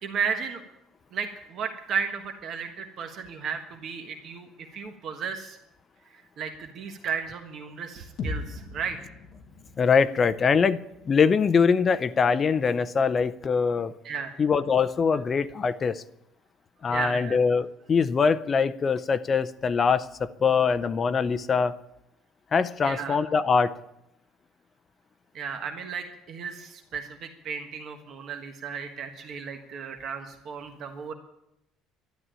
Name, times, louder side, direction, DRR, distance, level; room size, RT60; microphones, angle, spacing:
voice 1, 0.0-0.6 1.1-5.6 6.1-9.0 14.0-14.3 16.9-17.4 22.8-23.2 25.3-31.1, right 6 dB, 40° right, 5 dB, 1.4 m, -34 dB
sound 1, 8.2-12.2, left 3 dB, 40° left, 1.6 m, -39 dB
voice 2, 9.8-10.8 11.0-13.9 14.4-16.0 16.8-21.7 22.5-23.7, left 5 dB, 25° left, 13 dB, 0.6 m, -23 dB
12.5 x 11.0 x 8.9 m, 0.85 s
cardioid pair, 165°, 0 cm